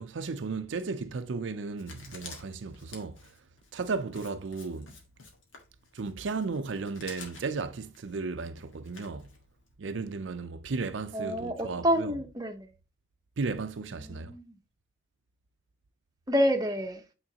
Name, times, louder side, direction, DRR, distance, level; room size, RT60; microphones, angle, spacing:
voice 1, 0.0-3.2 3.7-4.9 5.9-9.3 9.8-12.1 13.4-14.3, right 4 dB, 75° right, 0.5 m, -35 dB
Writing, 1.8-9.7, left 4 dB, 85° left, 1.7 m, -50 dB
voice 2, 11.1-12.7 14.0-14.6 16.3-17.0, equal, 20° right, 0.8 m, -28 dB
8.6 x 3.9 x 2.8 m
head